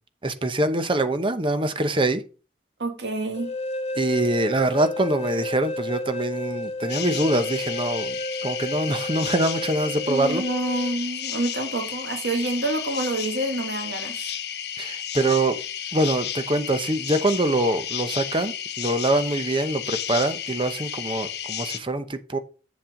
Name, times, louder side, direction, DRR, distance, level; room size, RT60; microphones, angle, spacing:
voice 1, 0.2-2.2 4.0-8.2 8.4-10.4 14.8-15.6 15.9-22.4, right 1 dB, 30° right, 0.9 m, -24 dB
voice 2, 2.8-3.5 10.1-14.3, right 2 dB, 75° right, 1.8 m, -27 dB
sound 1, 3.3-11.0, left 1 dB, 35° left, 0.6 m, -32 dB
sound 2, 6.9-21.8, left 9 dB, 65° left, 1.0 m, -33 dB
7.5 x 7.4 x 3.8 m
head